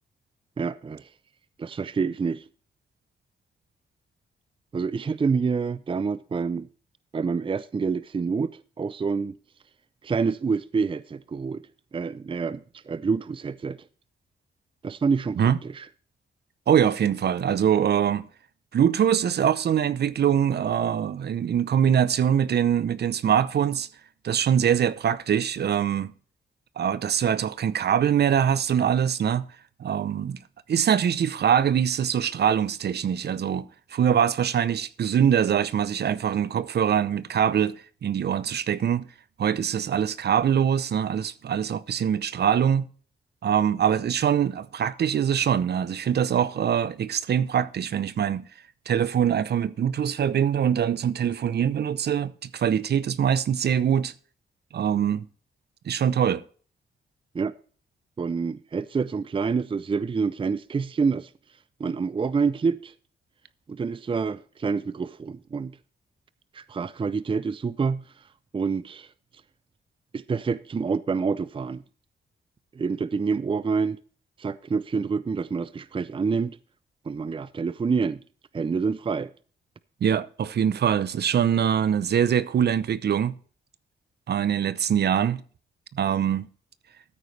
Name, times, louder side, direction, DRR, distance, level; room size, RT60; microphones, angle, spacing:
voice 1, 0.6-1.1 1.6-2.4 4.7-6.7 7.1-9.3 10.0-11.6 11.9-13.8 14.8-15.9 57.3-57.5 58.2-61.3 61.8-62.9 63.7-65.8 66.5-68.0 68.5-69.1 70.1-71.8 72.7-74.0 74.4-76.6 77.1-78.2 78.5-79.3, right 5 dB, 30° right, 0.5 m, -27 dB
voice 2, 16.7-18.2 18.7-23.9 24.2-26.1 26.8-29.5 29.8-30.4 30.7-39.1 39.4-42.9 43.4-48.4 48.9-54.1 54.7-55.3 55.9-56.4 80.0-83.3 84.3-85.4 85.9-86.5, right 8 dB, 60° right, 0.7 m, -23 dB
13.5 x 9.2 x 3.3 m
cardioid pair, 90°, 19 cm